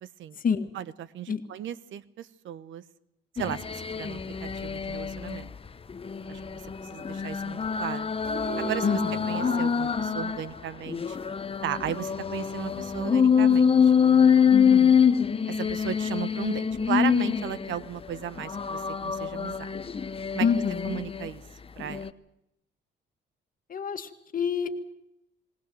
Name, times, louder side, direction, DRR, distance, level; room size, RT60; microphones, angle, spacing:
voice 1, 0.0-0.4 0.7-2.8 3.3-5.5 6.3-6.6 6.9-8.1 8.6-9.0 9.3-11.2 11.6-13.9 15.5-19.7 20.3-21.4 21.8-22.1, right 10 dB, 75° right, 17 dB, 1.0 m, -35 dB
sound 1, 3.4-5.4 5.9-10.4 10.9-17.8 18.4-21.3 21.8-22.1, left 7 dB, 30° left, 0.9 m, -25 dB
sound 2, 8.2-11.3, right 4 dB, 50° right, 4.2 m, -38 dB
voice 2, 14.5-15.0 20.4-21.0 23.7-24.7, left 6 dB, 45° left, 8 dB, 1.8 m, -27 dB
20.0 x 19.5 x 7.8 m, 0.83 s
cardioid pair, 90°, 20 cm